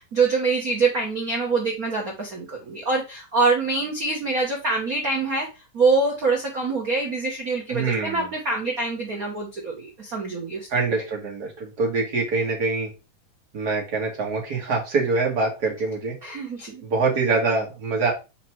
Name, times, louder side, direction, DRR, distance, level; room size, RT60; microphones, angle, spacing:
voice 1, 0.0-5.5 5.7-10.7 16.2-16.8, right 3 dB, 55° right, -1 dB, 1.0 m, -25 dB
voice 2, 7.7-8.3 10.7-12.9 13.5-16.1 16.8-18.1, right 3 dB, 35° right, -1 dB, 2.0 m, -24 dB
5.0 x 4.4 x 4.7 m, 0.29 s
omnidirectional pair, 3.6 m